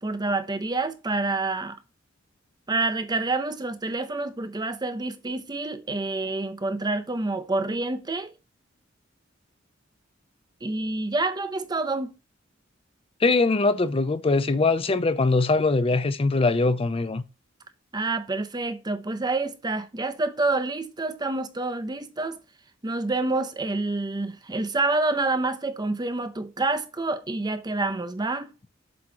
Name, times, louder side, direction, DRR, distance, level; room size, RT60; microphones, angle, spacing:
voice 1, 0.0-1.8 2.7-8.3 10.6-12.1 17.9-22.4 22.8-28.5, right 2 dB, 20° right, 0.6 m, -28 dB
voice 2, 13.2-17.2, left 3 dB, 30° left, 0.5 m, -22 dB
7.7 x 3.0 x 4.9 m
head